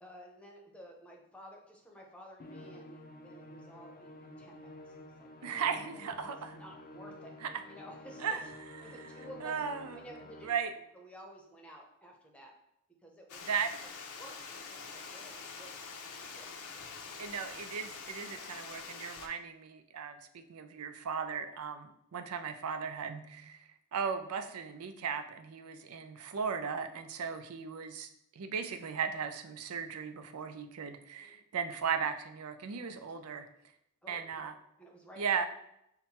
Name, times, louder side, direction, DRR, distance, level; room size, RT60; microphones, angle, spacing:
voice 1, 0.0-7.3 7.6-8.2 8.8-9.5 9.9-10.5 10.9-12.5 13.0-13.9 14.1-15.7 16.0-16.5 17.0-17.4 30.2-30.3 31.2-31.4 32.7-33.5 34.0-35.5, equal, 5° left, 0 dB, 0.8 m, -53 dB
Musical instrument, 2.4-10.9, left 1 dB, 40° left, 0.5 m, -50 dB
voice 2, 5.4-6.4 7.4-7.5 8.2-8.5 8.8-10.0 10.4-10.7 13.5-13.7 17.2-28.1 28.4-33.5 34.1-34.5 35.2-35.4, right 6 dB, 90° right, 9 dB, 0.5 m, -37 dB
Water, 13.3-19.3, left 5 dB, 85° left, 0.6 m, -45 dB
5.7 x 2.2 x 4.3 m, 0.78 s
head